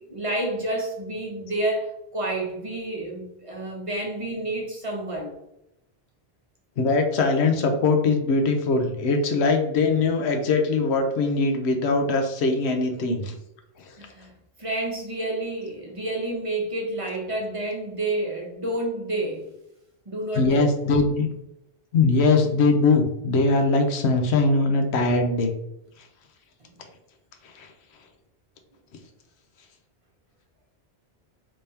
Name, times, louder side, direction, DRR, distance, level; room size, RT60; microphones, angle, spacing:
voice 1, 0.1-5.3 14.0-14.3 14.6-19.5 20.1-20.7, right 1 dB, 35° right, -2 dB, 0.8 m, -29 dB
voice 2, 6.8-13.3 13.8-13.9 20.3-21.3 21.9-25.5 27.4-27.7, left 3 dB, 85° left, 5 dB, 0.9 m, -21 dB
3.3 x 3.3 x 2.7 m, 0.83 s
omnidirectional pair, 1.1 m